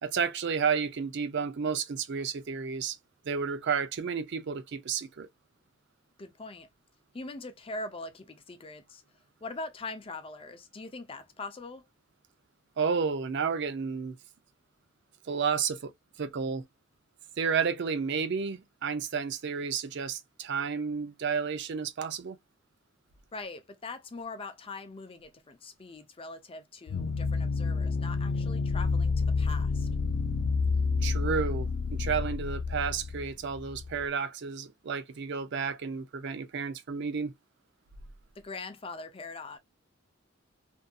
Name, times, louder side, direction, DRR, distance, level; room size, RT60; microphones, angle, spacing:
voice 1, 0.0-3.0 3.3-5.3 12.8-14.2 15.3-15.9 16.2-16.6 17.4-22.4 31.0-37.3, right 6 dB, 60° right, 0.5 m, -31 dB
voice 2, 6.2-6.7 7.1-9.0 9.4-11.8 23.3-29.9 38.4-39.6, left 3 dB, 30° left, 0.5 m, -42 dB
sound 1, 26.9-34.0, left 4 dB, 90° left, 0.4 m, -29 dB
2.6 x 2.6 x 2.2 m
head